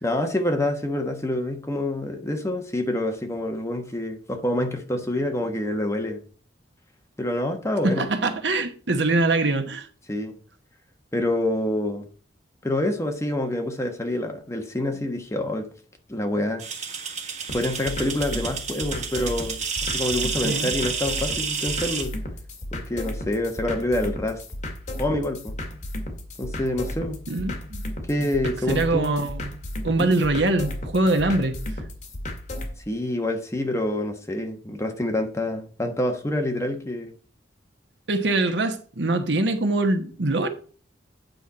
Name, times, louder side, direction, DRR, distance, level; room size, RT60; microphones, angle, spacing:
voice 1, 0.0-6.2 7.2-8.1 10.1-10.3 11.1-12.1 12.6-15.7 16.1-16.6 17.5-22.2 22.7-24.4 25.0-25.5 26.4-27.2 28.1-29.2 30.0-30.1 32.9-37.1, left 1 dB, 15° left, 1.3 m, -27 dB
voice 2, 7.8-9.9 20.4-20.7 27.3-27.8 28.2-28.3 28.7-29.5 29.8-31.6 38.1-40.5, right 2 dB, 70° right, 1.2 m, -23 dB
sound 1, 16.6-22.0, right 5 dB, 40° right, 1.6 m, -30 dB
sound 2, 17.5-32.7, left 1 dB, 40° left, 2.1 m, -34 dB
9.3 x 4.5 x 5.6 m
head